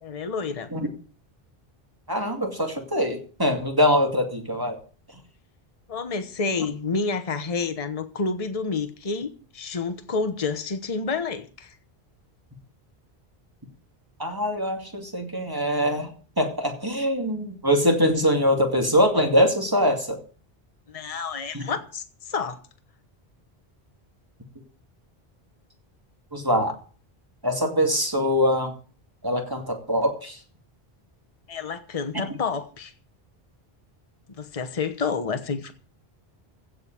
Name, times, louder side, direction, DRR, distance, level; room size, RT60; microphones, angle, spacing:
voice 1, 0.0-0.7 5.9-11.8 20.9-22.6 31.5-32.9 34.3-35.7, left 4 dB, 35° left, 1.1 m, -29 dB
voice 2, 2.1-4.8 14.2-16.1 16.4-20.2 21.5-21.6 26.3-26.8 27.4-28.7 29.2-30.4, equal, 20° right, 2.4 m, -23 dB
15.5 x 5.2 x 8.9 m
omnidirectional pair, 1.0 m